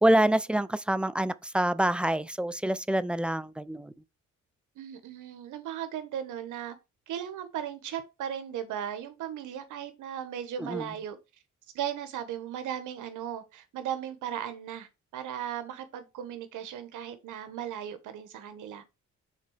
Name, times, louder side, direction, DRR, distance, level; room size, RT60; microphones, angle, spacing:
voice 1, 0.0-3.9 10.6-10.9, right 1 dB, 5° right, 0.4 m, -26 dB
voice 2, 4.7-6.8 7.1-11.2 11.7-18.9, right 10 dB, 80° right, 1.5 m, -37 dB
6.5 x 4.0 x 5.0 m
cardioid pair, 90°, 30 cm